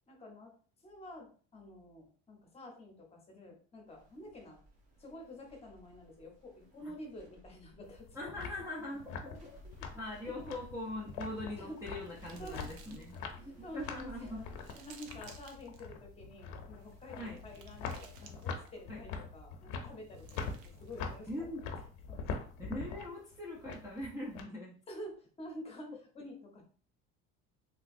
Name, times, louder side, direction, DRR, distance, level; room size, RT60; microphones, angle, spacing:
voice 1, 0.1-0.5 0.8-4.6 5.0-8.1 11.5-11.8 12.3-12.8 13.4-14.4 14.7-21.5 22.1-22.2 24.9-26.6, left 1 dB, 20° left, 1 dB, 0.8 m, -49 dB
sound 1, 3.9-19.4 19.7-19.8, right 1 dB, 55° right, 1.2 m, -59 dB
sound 2, 7.8-24.4, left 5 dB, 90° left, 0.7 m, -44 dB
voice 2, 8.1-14.4 17.2-17.4 18.9-19.0 21.3-21.7 22.6-24.8 25.9-26.0, left 1 dB, 10° right, -4 dB, 0.4 m, -42 dB
sound 3, 11.1-13.4 13.9-15.9 16.7-18.9 19.9-21.4, right 6 dB, 90° right, 0.6 m, -59 dB
3.3 x 2.9 x 2.5 m, 0.42 s
cardioid pair, 145°, 30 cm